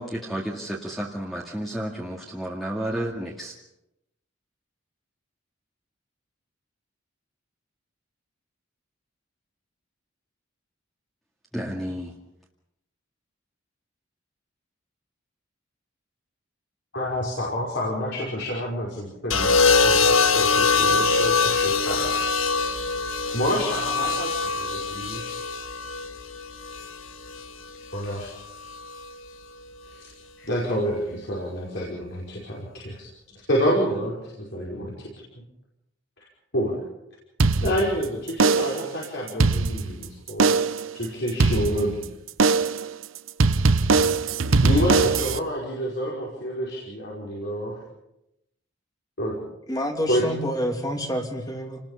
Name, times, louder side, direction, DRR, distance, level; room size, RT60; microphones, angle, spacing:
voice 1, 0.0-3.5 11.5-12.1, right 1 dB, ahead, 2.2 m, -31 dB
voice 2, 16.9-19.5 19.8-22.2 22.5-22.6 23.3-25.4 27.9-28.3 29.9-30.1 30.4-33.1 33.5-35.1 36.2-36.3 36.5-36.8 37.6-40.6 40.9-42.0 44.6-47.8 49.2-49.4 50.1-50.3, equal, 60° left, 5.4 m, -28 dB
sound 1, 19.3-27.5 28.7-29.1, left 4 dB, 85° left, 1.6 m, -23 dB
sound 2, 37.4-38.0 38.4-38.9 39.3-40.0 40.4-40.9 41.4-42.0 42.4-42.9 43.4-45.4, right 4 dB, 90° right, 0.9 m, -20 dB
voice 3, 49.7-51.8, equal, 20° left, 2.7 m, -28 dB
28.5 x 20.0 x 5.7 m
head